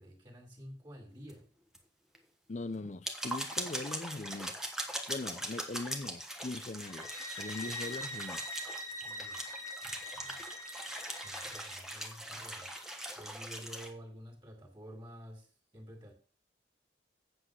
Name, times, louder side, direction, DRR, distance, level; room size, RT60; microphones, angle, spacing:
voice 1, 0.0-1.5 9.0-9.4 9.8-10.5 11.2-12.7 13.2-16.1, equal, 25° right, 2.5 m, -50 dB
sound 1, 1.3-1.4 1.7-1.8 2.1-2.2 2.8-13.9, right 1 dB, 5° right, 1.3 m, -41 dB
voice 2, 2.5-4.6 5.1-7.1 7.4-8.5, left 2 dB, 40° left, 0.6 m, -41 dB
sound 2, 6.9-11.8, equal, 15° left, 1.5 m, -43 dB
8.0 x 7.9 x 6.2 m
head